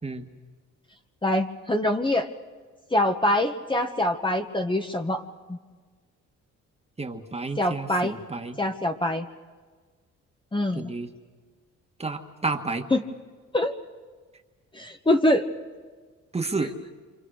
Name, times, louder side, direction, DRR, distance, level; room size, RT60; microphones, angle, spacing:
voice 1, 1.2-2.3 2.9-5.2 5.5-5.6 7.6-8.1 8.6-9.3 10.5-10.9 12.9-13.0 13.5-13.7 14.7-15.5, left 1 dB, 15° left, 4 dB, 1.5 m, -24 dB
voice 2, 7.0-8.6 10.7-11.1 12.0-12.9 16.3-16.7, right 3 dB, 20° right, 5 dB, 2.0 m, -31 dB
28.5 x 26.5 x 6.5 m, 1.4 s
cardioid pair, 90°, 30 cm